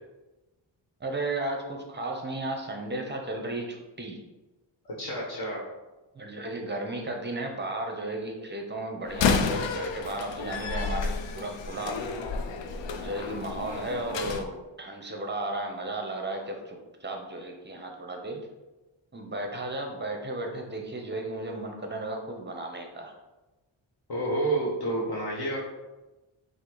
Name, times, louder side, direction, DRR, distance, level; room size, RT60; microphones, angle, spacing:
voice 1, 1.0-4.2 6.1-12.0 12.9-18.5 19.1-23.1, right 2 dB, 25° right, 2 dB, 0.7 m, -34 dB
voice 2, 4.8-5.6 24.1-25.6, right 1 dB, 55° left, -5 dB, 1.2 m, -29 dB
Slam, 9.1-14.4, left 5 dB, 70° left, 0.5 m, -30 dB
5.6 x 2.1 x 3.8 m, 1.1 s
wide cardioid pair, 110°, 46 cm